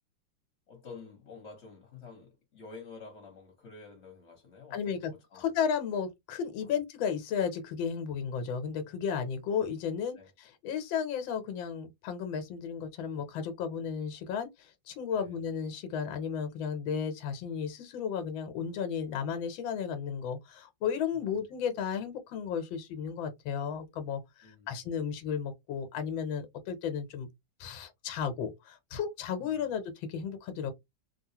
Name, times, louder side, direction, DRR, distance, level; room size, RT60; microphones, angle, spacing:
voice 1, 0.7-5.5 6.6-6.8 10.2-10.3 15.1-15.4 21.1-21.4 24.4-24.8 29.4-29.8, left 4 dB, 40° left, 1.3 m, -50 dB
voice 2, 4.7-27.3 27.6-30.7, left 7 dB, 85° left, 1.5 m, -34 dB
3.5 x 2.4 x 2.7 m
omnidirectional pair, 2.1 m